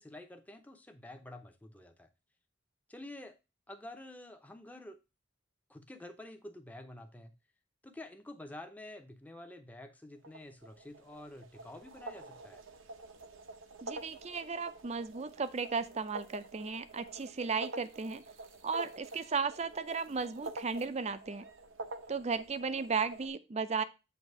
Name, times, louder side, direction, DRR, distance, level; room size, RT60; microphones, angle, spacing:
voice 1, 0.0-2.1 2.9-3.3 3.7-5.0 5.7-7.3 7.8-12.6, left 1 dB, 10° left, 0.7 m, -49 dB
sound 1, 10.2-23.3, right 2 dB, 90° right, 0.8 m, -47 dB
voice 2, 13.8-18.2 18.6-21.5 22.1-23.8, right 5 dB, 35° right, 0.5 m, -35 dB
8.1 x 2.8 x 5.3 m
head